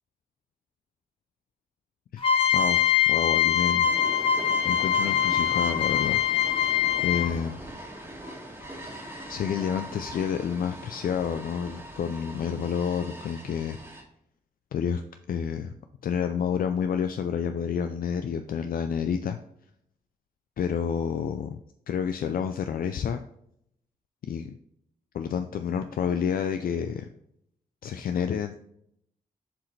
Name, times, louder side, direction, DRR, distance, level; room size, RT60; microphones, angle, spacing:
voice 1, 2.1-2.8 3.1-3.9 4.6-6.2 7.0-7.6 8.8-13.8 14.7-15.0 15.3-15.7 16.0-19.4 20.6-21.6 21.9-23.2 24.3-24.5 25.1-27.1 27.8-28.6, left 7 dB, 70° left, 8 dB, 0.4 m, -29 dB
sound 1, 2.2-7.5, left 9 dB, 40° left, 0.9 m, -23 dB
sound 2, 3.8-14.0, right 1 dB, 15° right, 1.8 m, -41 dB
7.3 x 4.8 x 3.2 m, 0.73 s
cardioid pair, 80°, 15 cm